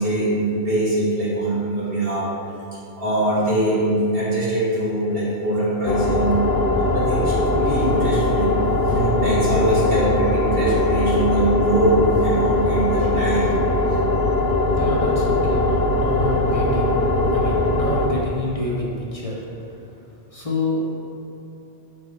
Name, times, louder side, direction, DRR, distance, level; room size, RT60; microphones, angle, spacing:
voice 1, 0.0-2.3 2.7-6.4 6.8-8.5 8.9-13.6 13.9-14.0, right 1 dB, 65° right, -8 dB, 2.1 m, -22 dB
sound 1, 5.9-18.1, left 2 dB, 75° left, 1.0 m, -20 dB
voice 2, 14.7-17.0 17.3-19.4 20.3-21.0, left 2 dB, 35° left, -5 dB, 1.0 m, -27 dB
6.6 x 4.6 x 4.7 m, 2.9 s
omnidirectional pair, 1.0 m